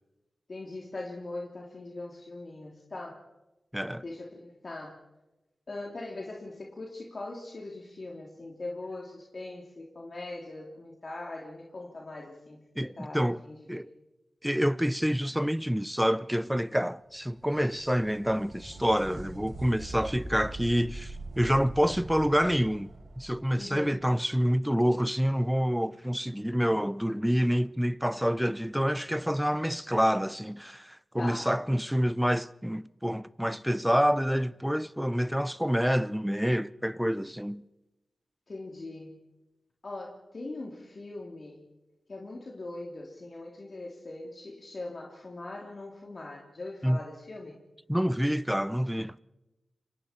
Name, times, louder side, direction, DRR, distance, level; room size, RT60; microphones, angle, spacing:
voice 1, 0.5-3.2 4.0-5.0 5.7-13.7 23.6-24.0 26.7-26.8 31.2-31.5 38.5-39.2 39.8-41.6 42.1-47.6, left 2 dB, 55° left, 3.1 m, -41 dB
voice 2, 3.7-4.0 12.8-13.4 13.7-13.9 14.4-22.9 23.2-37.6 46.8-47.0 47.9-49.2, equal, 5° right, 0.7 m, -27 dB
sound 1, 17.1-24.7 28.1-28.2 29.2-29.3, right 2 dB, 65° right, 7.9 m, -43 dB
29.5 x 25.0 x 4.5 m
cardioid pair, 55°, 0 cm